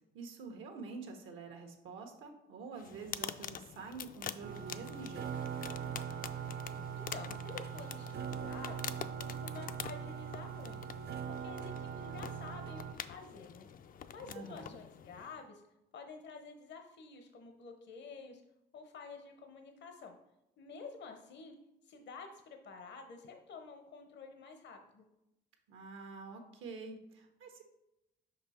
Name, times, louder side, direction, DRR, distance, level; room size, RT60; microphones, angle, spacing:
voice 1, 0.1-5.3 14.3-14.7 25.7-27.6, right 4 dB, 80° right, 4 dB, 1.1 m, -47 dB
sound 1, 2.8-15.4, left 8 dB, 45° left, 0.4 m, -46 dB
sound 2, 4.4-12.9, right 8 dB, 55° right, 0.5 m, -41 dB
voice 2, 7.0-8.8 9.2-10.9 11.4-13.7 14.1-15.6 15.9-18.4 18.7-20.2 20.6-21.5 21.9-25.0, left 4 dB, 65° left, 5 dB, 0.8 m, -50 dB
5.4 x 5.2 x 4.2 m, 0.88 s
cardioid pair, 90°, 20 cm